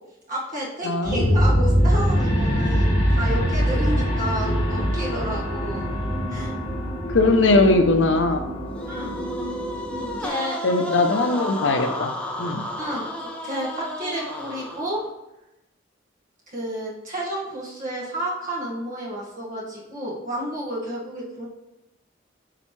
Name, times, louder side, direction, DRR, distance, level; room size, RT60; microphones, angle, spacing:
voice 1, 0.3-5.9 6.3-6.5 8.9-9.1 10.0-10.6 12.8-15.0 16.5-21.5, right 1 dB, 45° right, -4 dB, 1.7 m, -31 dB
voice 2, 0.8-1.3 7.1-8.5 10.6-12.1 12.4-12.6, left 2 dB, 80° left, 7 dB, 0.6 m, -20 dB
sound 1, 1.0-10.3, equal, 25° left, 2.0 m, -23 dB
sound 2, 8.7-15.1, left 1 dB, 5° left, 0.7 m, -33 dB
7.6 x 4.3 x 3.2 m, 0.93 s
head